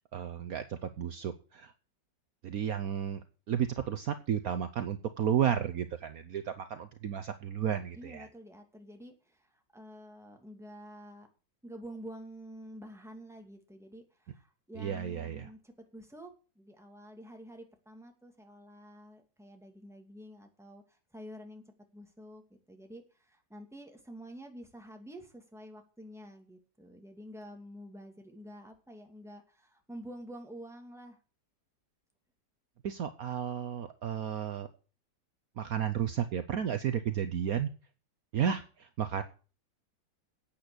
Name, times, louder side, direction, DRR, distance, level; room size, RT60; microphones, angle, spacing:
voice 1, 0.1-1.7 2.4-3.2 3.5-8.3 14.8-15.4 32.8-34.7 35.6-37.7 38.3-39.2, right 9 dB, 60° right, 9 dB, 1.2 m, -32 dB
voice 2, 7.9-11.3 11.6-21.6 21.9-22.4 22.7-31.2, equal, ahead, 3 dB, 2.2 m, -49 dB
10.5 x 8.8 x 6.8 m, 0.36 s
omnidirectional pair, 1.9 m